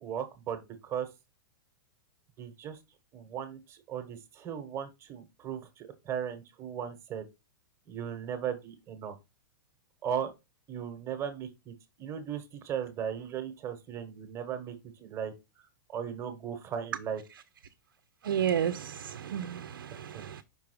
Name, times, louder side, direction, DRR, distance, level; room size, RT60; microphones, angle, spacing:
voice 1, 0.0-1.1 2.4-2.8 3.1-7.3 7.9-9.1 10.0-10.3 10.7-11.7 12.0-14.7 15.0-15.3 15.9-17.2 20.1-20.2, right 8 dB, 25° right, 1.1 m, -37 dB
voice 2, 18.2-20.4, right 9 dB, 90° right, 0.5 m, -32 dB
5.4 x 3.5 x 4.9 m
hypercardioid pair, 140°, 11 cm